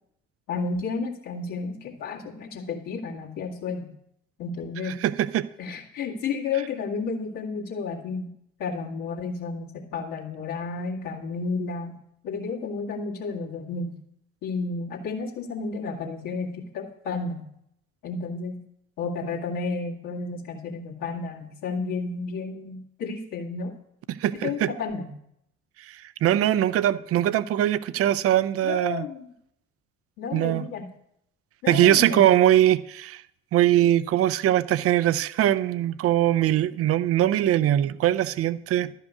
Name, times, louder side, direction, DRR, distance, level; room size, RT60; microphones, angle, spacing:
voice 1, 0.5-3.9 4.4-5.0 5.6-8.3 8.6-12.0 12.2-13.9 14.4-17.5 18.0-18.6 19.0-23.7 24.3-25.1 28.6-29.3 30.2-30.9 31.6-32.3, left 4 dB, 60° left, 2.1 m, -32 dB
voice 2, 5.0-5.5 24.1-24.7 25.9-29.0 30.3-30.7 31.7-33.2 33.5-38.9, right 12 dB, 35° right, 0.5 m, -22 dB
12.0 x 5.5 x 8.2 m
figure-of-eight pair, 50°, 39 cm